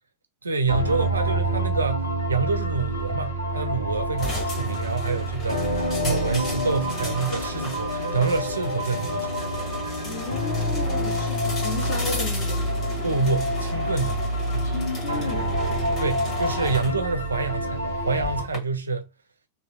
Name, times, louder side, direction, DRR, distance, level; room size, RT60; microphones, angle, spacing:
voice 1, 0.4-9.3 13.0-14.2 14.5-14.7 16.0-19.1, right 4 dB, 75° right, 0.5 m, -27 dB
sound 1, 0.7-18.4, equal, 90° left, 1.3 m, -27 dB
sound 2, 4.2-18.6, left 1 dB, 30° left, 1.7 m, -34 dB
voice 2, 10.0-12.7 14.6-15.6, left 3 dB, 55° left, 1.2 m, -34 dB
3.2 x 2.7 x 2.3 m
figure-of-eight pair, 90°, 0 cm